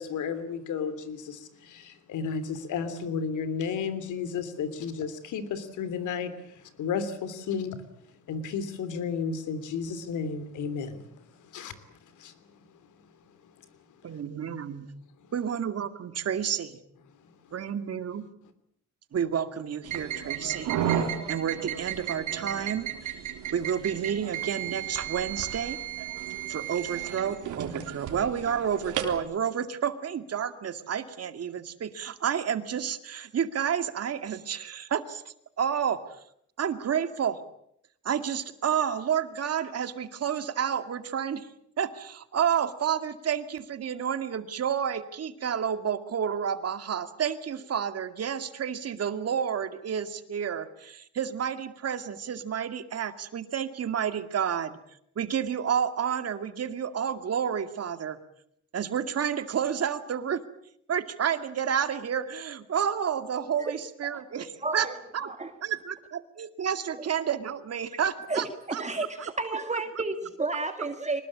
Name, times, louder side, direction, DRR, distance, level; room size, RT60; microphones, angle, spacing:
voice 1, 0.0-7.8 8.3-11.2 11.5-12.3 14.1-14.2, left 6 dB, 80° left, 12 dB, 3.2 m, -33 dB
voice 2, 14.0-14.9 15.3-16.8 17.5-18.3 19.1-23.2 23.5-25.8 26.5-36.0 36.6-37.4 38.0-41.5 41.8-54.8 55.2-58.2 58.7-60.4 60.9-64.9 65.1-65.3 65.6-68.8, right 8 dB, 55° right, 9 dB, 2.3 m, -30 dB
sound 1, 19.8-29.2, right 10 dB, 80° right, 3.5 m, -33 dB
voice 3, 64.6-65.5 68.3-68.4 68.8-71.2, right 3 dB, 25° right, 7 dB, 2.1 m, -31 dB
24.0 x 20.5 x 8.7 m, 0.71 s
cardioid pair, 90°, 30 cm